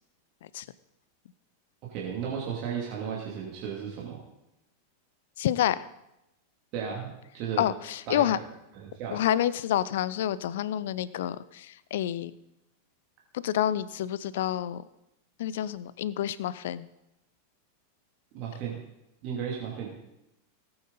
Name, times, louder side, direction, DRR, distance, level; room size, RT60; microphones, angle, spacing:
voice 1, 1.9-4.2 6.7-7.6 8.1-8.2 8.7-9.2 18.3-18.8 19.2-20.0, right 7 dB, 40° right, -3 dB, 2.6 m, -34 dB
voice 2, 5.4-5.9 7.6-8.4 9.1-12.3 13.3-14.8 15.4-16.9, left 11 dB, 55° left, 18 dB, 0.6 m, -28 dB
18.5 x 8.8 x 4.0 m, 0.86 s
figure-of-eight pair, 90°, 0 cm